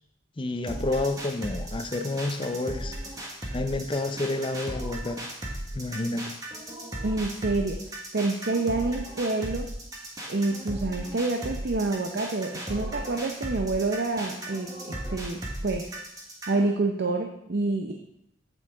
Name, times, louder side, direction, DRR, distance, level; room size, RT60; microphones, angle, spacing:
voice 1, 0.4-3.0 3.5-5.3 5.7-6.3, left 2 dB, 25° left, 8 dB, 0.5 m, -29 dB
sound 1, 0.7-16.7, right 1 dB, 20° right, 1.4 m, -36 dB
voice 2, 7.0-9.7 10.3-15.9 16.5-17.9, right 3 dB, 55° right, 4 dB, 0.6 m, -28 dB
8.5 x 7.7 x 3.8 m, 0.79 s
head